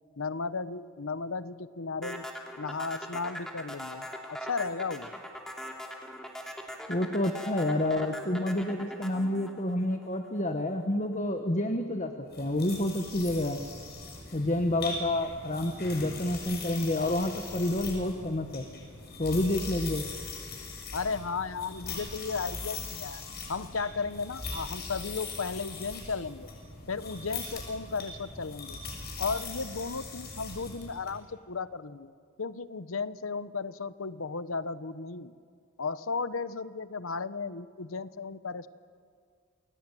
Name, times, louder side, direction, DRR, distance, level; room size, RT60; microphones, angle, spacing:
voice 1, 0.2-2.3 2.6-5.1 20.9-23.2 23.5-26.5 26.9-28.8 29.2-32.1 32.4-35.3 35.8-38.7, left 4 dB, 85° left, 15 dB, 0.9 m, -35 dB
sound 1, 2.0-10.4, equal, 5° left, 3.0 m, -40 dB
voice 2, 6.9-13.6 14.3-18.6 19.2-20.1, left 1 dB, 35° left, 6 dB, 1.4 m, -29 dB
sound 2, 12.3-31.1, left 3 dB, 50° left, 6.7 m, -41 dB
29.0 x 21.0 x 9.2 m, 2.2 s
head